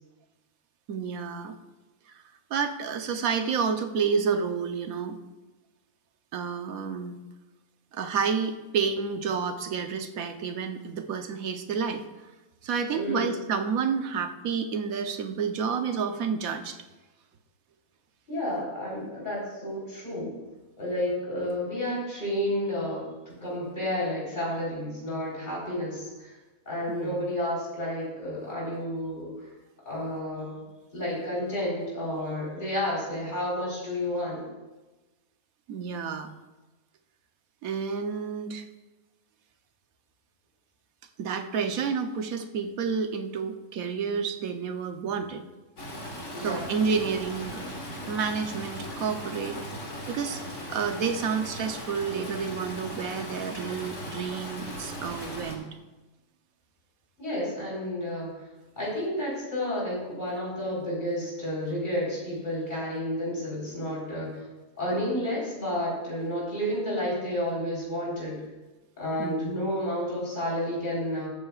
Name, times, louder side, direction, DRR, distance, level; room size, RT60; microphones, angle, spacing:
voice 1, 0.9-1.5 2.5-5.2 6.3-7.2 7.9-12.0 12.6-16.8 26.9-27.2 35.7-36.3 37.6-38.7 41.2-45.4 46.4-47.6 48.1-49.6 50.1-50.4 50.7-55.7 69.2-69.6, right 6 dB, 75° right, 6 dB, 1.3 m, -30 dB
voice 2, 12.9-13.3 18.3-20.3 20.8-26.4 26.7-29.5 29.9-30.6 30.9-34.4 46.3-46.7 57.2-58.4 58.8-64.4 64.8-68.4 69.0-71.3, left 1 dB, 35° left, -6 dB, 4.1 m, -31 dB
Stream, 45.8-55.6, equal, 55° left, 2.4 m, -38 dB
20.0 x 8.8 x 2.4 m, 1.2 s
omnidirectional pair, 1.5 m